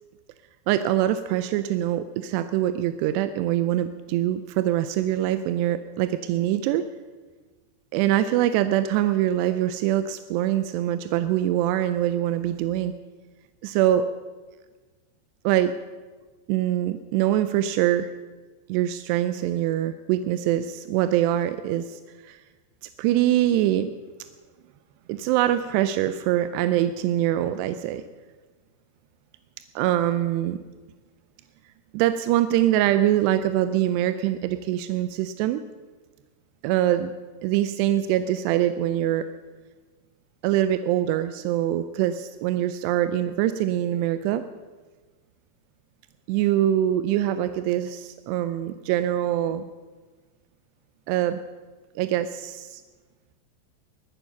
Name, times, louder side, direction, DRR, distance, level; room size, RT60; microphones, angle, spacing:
voice 1, 0.7-6.8 7.9-12.9 13.6-14.1 15.4-15.8 16.5-18.1 18.7-22.4 23.0-23.9 25.1-28.0 29.8-30.6 31.9-35.6 36.6-37.1 37.4-39.2 40.4-44.4 46.3-49.6 51.1-51.4 52.0-52.8, right 12 dB, 80° right, 10 dB, 2.5 m, -24 dB
21.5 x 10.0 x 5.8 m, 1.3 s
omnidirectional pair, 5.3 m